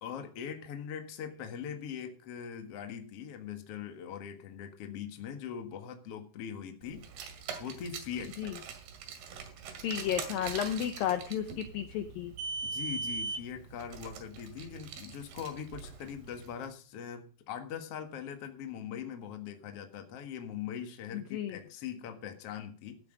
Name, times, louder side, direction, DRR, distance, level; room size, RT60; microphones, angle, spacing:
voice 1, 0.0-7.0 7.6-8.4 12.6-23.0, left 8 dB, 55° left, 5 dB, 1.8 m, -41 dB
Car, 7.0-16.5, right 4 dB, 70° right, 3.9 m, -41 dB
voice 2, 9.8-12.3 21.1-21.6, left 10 dB, 75° left, 8 dB, 2.2 m, -33 dB
16.0 x 8.5 x 5.1 m, 0.38 s
omnidirectional pair, 4.9 m